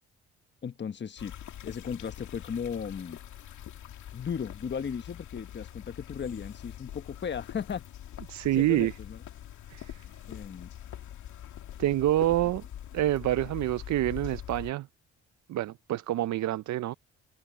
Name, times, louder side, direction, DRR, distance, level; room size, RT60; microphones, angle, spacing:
voice 1, 0.6-1.3 1.6-3.2 4.1-7.8 8.5-9.2 10.3-10.7, left 7 dB, 35° left, 1.2 m, -36 dB
sound 1, 1.2-14.7, left 11 dB, 75° left, 2.3 m, -44 dB
voice 2, 8.3-8.9 9.7-10.0 11.8-12.6 12.9-14.9 15.5-16.9, right 14 dB, 65° right, 0.6 m, -27 dB
cardioid pair, 90°, 30 cm